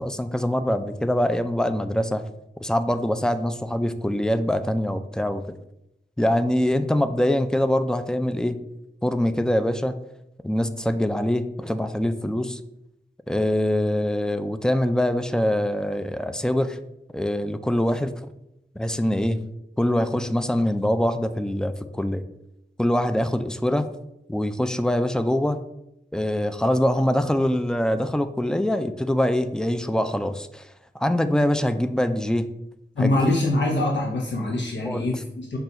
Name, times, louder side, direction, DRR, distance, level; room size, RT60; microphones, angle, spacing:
voice 1, 0.0-2.2 2.6-5.6 6.2-8.6 9.0-9.9 10.4-12.6 13.3-16.8 17.1-18.1 18.8-19.4 19.8-22.2 22.8-23.9 24.3-25.6 26.1-30.6 30.9-32.5 33.0-33.3 34.8-35.1, left 1 dB, 5° left, 10 dB, 0.3 m, -24 dB
voice 2, 33.0-35.6, left 2 dB, 75° left, -1 dB, 0.7 m, -24 dB
5.8 x 2.3 x 3.9 m, 0.84 s
wide cardioid pair, 65°, 19 cm